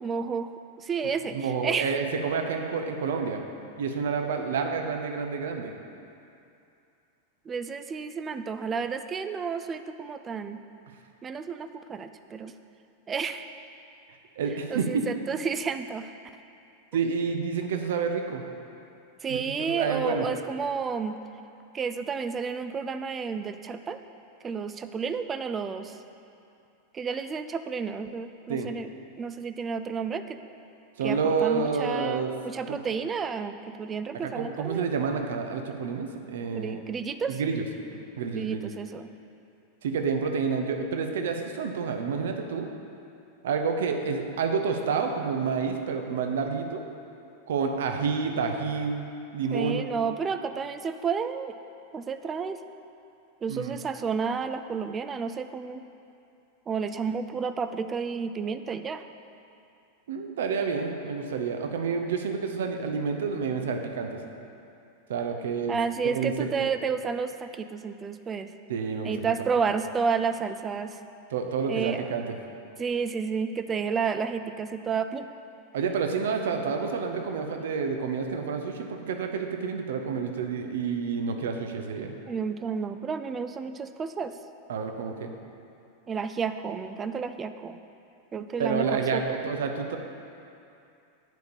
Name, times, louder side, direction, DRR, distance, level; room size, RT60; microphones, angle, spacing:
voice 1, 0.0-2.0 7.5-10.6 11.2-12.5 13.1-13.5 14.7-16.1 19.2-21.2 21.7-24.0 24.4-26.0 26.9-28.9 29.2-30.4 31.0-34.9 36.5-37.4 38.3-39.1 49.5-51.6 51.9-52.6 53.4-55.9 56.7-59.0 65.7-68.5 69.0-71.0 71.7-72.2 72.8-75.3 81.4-81.5 82.3-84.4 86.1-87.8 88.3-89.2, right 5 dB, 20° right, 10 dB, 0.4 m, -31 dB
voice 2, 1.0-3.4 3.8-5.7 14.4-15.1 16.9-18.4 19.3-20.2 28.5-28.7 31.0-32.3 32.7-32.8 34.2-36.8 37.3-37.7 38.2-38.7 39.8-42.7 43.4-46.8 47.5-49.0 49.3-49.9 53.5-53.8 60.1-64.2 65.1-65.8 66.0-66.5 68.7-69.1 71.3-72.4 75.7-82.1 84.7-85.3 88.6-90.0, right 5 dB, 60° right, 5 dB, 0.8 m, -29 dB
9.3 x 5.2 x 7.0 m, 2.6 s
figure-of-eight pair, 90°, 0 cm